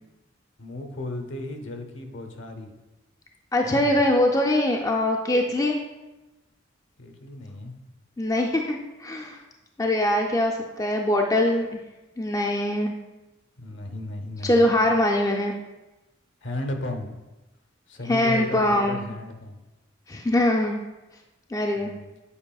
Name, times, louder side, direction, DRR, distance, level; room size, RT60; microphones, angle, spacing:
voice 1, 0.6-2.7 3.6-4.0 7.0-7.7 13.6-14.8 16.4-17.2 17.9-19.6 21.8-22.1, left 2 dB, 70° left, 5 dB, 0.7 m, -35 dB
voice 2, 3.5-5.8 8.2-9.4 9.8-11.8 12.2-12.9 14.4-15.5 18.1-19.0 20.1-20.8 21.5-21.9, left 1 dB, 15° left, 1 dB, 0.3 m, -22 dB
8.6 x 4.8 x 2.3 m, 1.1 s
head